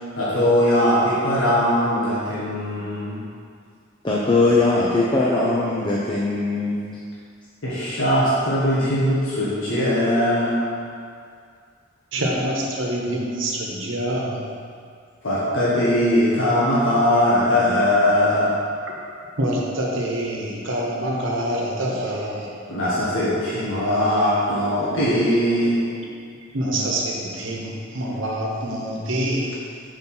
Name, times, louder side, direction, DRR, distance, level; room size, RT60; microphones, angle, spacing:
voice 1, 0.1-3.2 7.6-10.8 15.2-18.6 22.7-25.9, left 1 dB, 80° left, -9 dB, 1.4 m, -20 dB
voice 2, 4.0-6.9, left 2 dB, 25° left, -5 dB, 0.5 m, -20 dB
voice 3, 12.1-14.5 19.1-22.5 26.5-29.8, right 1 dB, 70° right, -2 dB, 1.1 m, -26 dB
5.3 x 4.5 x 5.5 m, 2.3 s
head